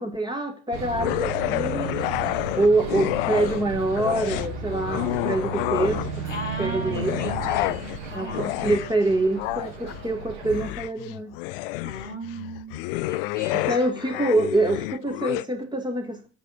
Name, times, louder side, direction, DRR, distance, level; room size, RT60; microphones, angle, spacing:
voice 1, 0.0-2.1 2.5-6.2 6.6-7.3 8.1-11.3 13.6-16.3, right 2 dB, 15° right, 4 dB, 1.8 m, -25 dB
Bus, 0.7-10.7, right 4 dB, 70° right, 1.9 m, -34 dB
sound 1, 1.0-3.7 3.9-6.3 6.8-15.5, left 19 dB, 55° left, 0.4 m, -29 dB
voice 2, 6.3-8.8 11.8-13.7 14.0-14.5, equal, 85° left, 1 dB, 1.8 m, -37 dB
8.5 x 4.2 x 6.0 m, 0.40 s
figure-of-eight pair, 70°, 35 cm